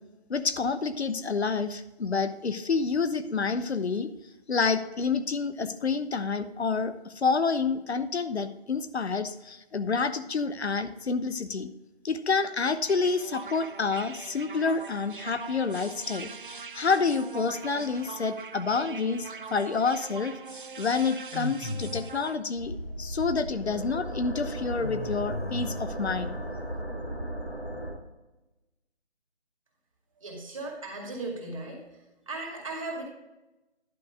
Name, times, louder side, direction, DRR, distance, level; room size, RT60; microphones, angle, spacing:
voice 1, 0.3-4.1 4.5-11.7 12.0-26.4, left 4 dB, 75° left, 11 dB, 0.9 m, -28 dB
sound 1, 12.9-22.4, right 5 dB, 50° right, 0.5 m, -42 dB
sound 2, 21.3-22.2 24.8-26.0, left 2 dB, 50° left, 1.1 m, -35 dB
sound 3, 22.5-27.9, right 1 dB, 5° left, 1.3 m, -36 dB
voice 2, 30.2-31.9 32.3-33.0, right 2 dB, 30° right, -1 dB, 2.2 m, -36 dB
11.0 x 5.3 x 4.8 m, 1.0 s
figure-of-eight pair, 175°, 33 cm